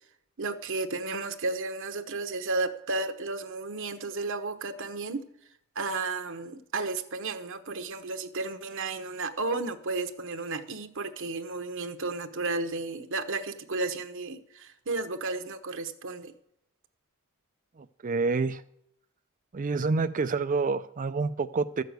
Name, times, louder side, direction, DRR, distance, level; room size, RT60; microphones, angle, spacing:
voice 1, 0.4-5.3 5.7-16.3, right 3 dB, 60° right, 1.0 m, -33 dB
voice 2, 18.0-18.6 19.5-21.8, right 4 dB, 40° right, 0.5 m, -27 dB
13.5 x 6.6 x 8.1 m
head